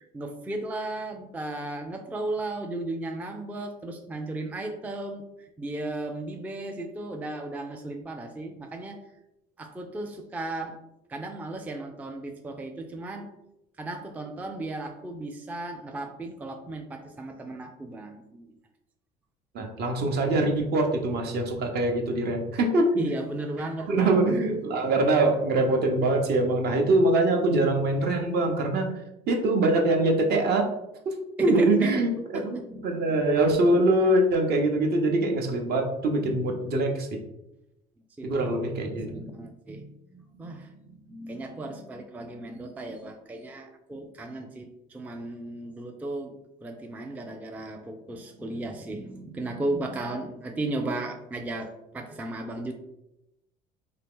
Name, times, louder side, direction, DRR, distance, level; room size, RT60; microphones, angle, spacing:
voice 1, 0.0-9.0 9.6-10.8 11.1-13.3 13.8-18.6 19.6-20.2 23.0-24.2 24.5-24.6 31.4-33.2 38.2-38.5 38.8-52.7, right 2 dB, 10° right, 4 dB, 0.3 m, -35 dB
voice 2, 19.5-22.9 23.9-28.8 29.3-30.7 31.1-37.1 38.2-39.1, right 2 dB, 55° right, 2 dB, 0.7 m, -23 dB
2.7 x 2.4 x 3.6 m, 0.89 s
supercardioid pair, 80°, 20 cm